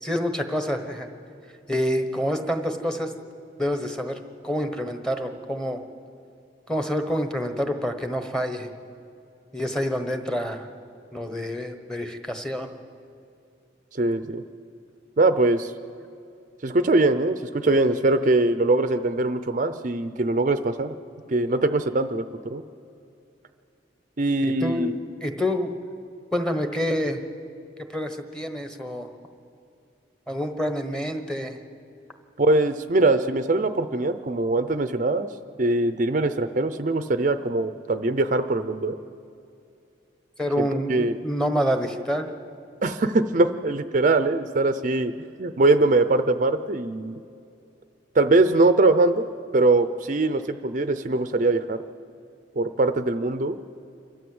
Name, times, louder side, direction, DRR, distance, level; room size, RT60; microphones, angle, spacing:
voice 1, 0.0-1.1 1.7-3.1 3.6-4.2 4.4-5.8 6.7-8.7 9.5-10.7 11.1-12.7 24.4-24.9 25.2-25.7 26.3-27.2 27.9-29.1 30.3-31.6 40.4-42.3, equal, 5° left, 6 dB, 1.2 m, -27 dB
voice 2, 13.9-14.4 15.2-15.7 16.6-20.9 21.3-22.6 24.2-24.9 32.4-35.3 35.6-39.0 40.6-41.2 42.8-45.1 45.4-47.2 48.1-49.3 49.5-51.8 52.6-53.6, right 2 dB, 40° right, 10 dB, 0.6 m, -22 dB
27.0 x 12.5 x 7.9 m, 2.6 s
head